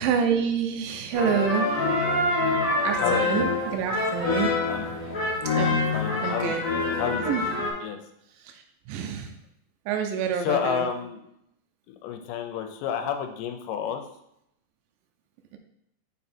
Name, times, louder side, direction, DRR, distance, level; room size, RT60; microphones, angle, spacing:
voice 1, 0.0-1.8 2.8-4.6 5.5-5.8 6.2-6.6 7.3-7.4 8.5-8.6 8.9-9.3 9.9-10.9, right 7 dB, 80° right, 4 dB, 2.2 m, -27 dB
sound 1, 1.1-7.7, left 3 dB, 30° left, 2.1 m, -26 dB
voice 2, 3.0-3.4 4.7-4.9 5.6-6.6 7.0-7.3 7.8-8.0 10.4-11.2 11.9-14.0, left 8 dB, 80° left, 6 dB, 2.0 m, -30 dB
5.4 x 4.7 x 4.3 m, 0.78 s
omnidirectional pair, 4.1 m